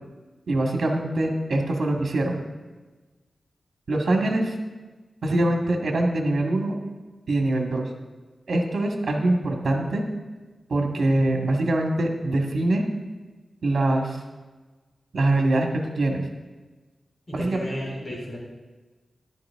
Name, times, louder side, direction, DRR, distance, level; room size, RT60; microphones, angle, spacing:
voice 1, 0.5-2.4 3.9-4.5 5.2-6.8 7.3-7.9 8.5-10.0 10.7-12.9 13.6-14.2 15.1-15.7 16.0-16.3 17.3-17.6, right 2 dB, 65° right, 2 dB, 1.9 m, -23 dB
voice 2, 17.3-18.4, equal, 40° left, -3 dB, 3.9 m, -33 dB
13.0 x 11.0 x 3.7 m, 1.3 s
wide cardioid pair, 100°, 0 cm